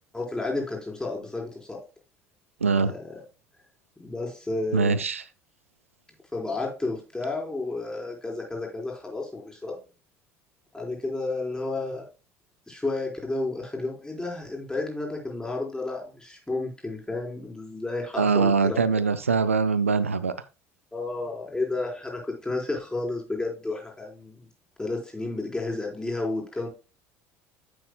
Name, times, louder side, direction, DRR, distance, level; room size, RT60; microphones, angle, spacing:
voice 1, 0.1-1.8 2.8-3.2 4.0-5.0 6.3-9.8 10.7-12.1 12.7-18.8 20.9-24.5 24.8-26.7, left 2 dB, 10° left, 4.2 m, -31 dB
voice 2, 2.6-2.9 4.7-5.2 18.2-20.3, right 5 dB, 90° right, 0.4 m, -23 dB
9.6 x 7.8 x 2.2 m
figure-of-eight pair, 65°, 7 cm